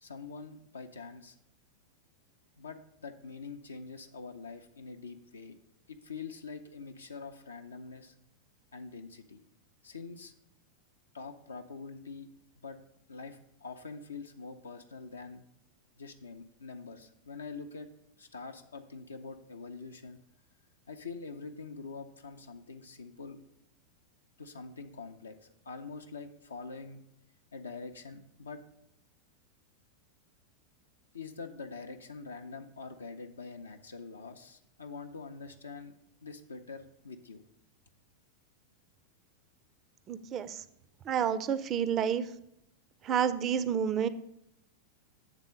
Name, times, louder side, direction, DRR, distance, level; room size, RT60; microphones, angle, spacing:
voice 1, 0.0-1.4 2.6-5.6 5.9-8.1 8.7-9.4 9.8-10.3 11.1-12.3 12.6-12.8 13.1-15.4 16.0-17.9 18.2-20.2 20.9-23.4 24.4-25.4 25.6-27.0 27.5-28.6 31.1-35.9 36.2-37.4, left 4 dB, 75° left, 6 dB, 0.5 m, -45 dB
voice 2, 40.1-40.6 41.1-42.3 43.0-44.1, right 8 dB, 30° right, 13 dB, 0.4 m, -29 dB
8.2 x 3.6 x 6.5 m, 0.79 s
figure-of-eight pair, 90°, 0 cm